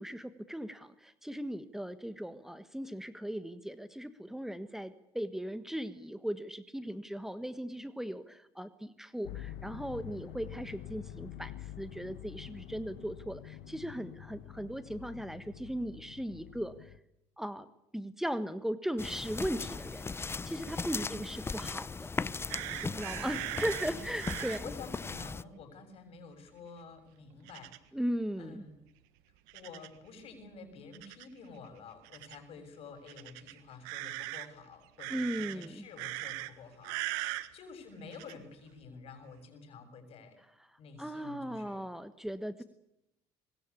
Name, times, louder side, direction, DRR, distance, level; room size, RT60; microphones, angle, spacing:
voice 1, 0.0-16.9 17.4-17.7 17.9-20.1 20.4-21.9 22.8-24.7 27.9-28.6 35.1-35.9 41.0-42.6, equal, 5° right, 11 dB, 1.4 m, -38 dB
sound 1, 9.2-17.0, left 12 dB, 80° left, 1.2 m, -47 dB
sound 2, 19.0-25.4, left 4 dB, 20° left, 0.8 m, -38 dB
sound 3, 22.5-24.6 27.5-27.8 29.5-30.0 30.9-31.3 32.0-32.4 33.1-34.5 35.0-35.7 36.0-36.5 36.8-37.5 38.1-38.3, right 18 dB, 90° right, 1.6 m, -39 dB
voice 2, 24.6-28.0 28.4-28.8 29.5-40.4 40.8-41.9 42.6-42.7, left 4 dB, 60° left, 8 dB, 7.0 m, -50 dB
23.5 x 21.0 x 8.5 m, 0.86 s
supercardioid pair, 85°, 11 cm